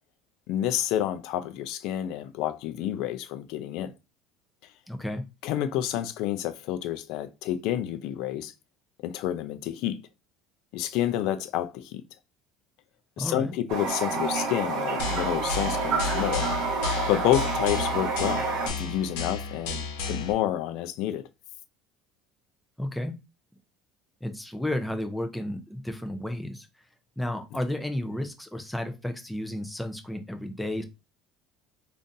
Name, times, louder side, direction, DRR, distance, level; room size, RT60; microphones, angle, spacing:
voice 1, 0.5-3.9 5.4-8.5 9.0-10.0 10.7-12.0 13.2-16.5 17.1-21.3, left 12 dB, 65° left, 0.4 m, -29 dB
voice 2, 4.9-5.3 13.2-13.5 22.8-23.2 24.2-26.7 27.2-30.8, left 1 dB, 5° left, 0.5 m, -32 dB
Toilet flush, 13.7-18.7, right 4 dB, 60° right, 1.0 m, -28 dB
sound 1, 15.0-20.3, left 4 dB, 90° left, 0.9 m, -33 dB
3.7 x 2.5 x 2.6 m
cardioid pair, 145°, 0 cm